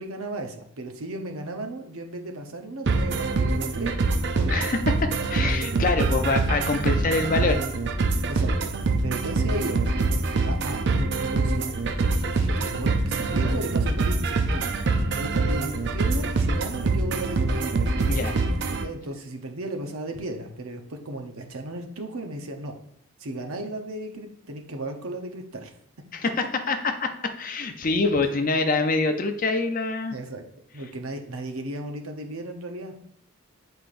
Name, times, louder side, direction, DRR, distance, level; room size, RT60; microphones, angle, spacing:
voice 1, 0.0-3.9 4.3-4.7 6.1-6.2 8.3-9.8 10.4-17.7 18.8-22.7 23.2-25.7 30.1-30.4 30.7-32.9, right 1 dB, 80° right, 4 dB, 0.8 m, -35 dB
sound 1, 2.9-18.8, right 3 dB, 55° right, 0.5 m, -24 dB
voice 2, 4.5-7.6 18.1-18.4 26.1-27.1 27.4-30.2, left 3 dB, 40° left, 6 dB, 0.5 m, -25 dB
8.2 x 4.5 x 2.6 m, 0.72 s
head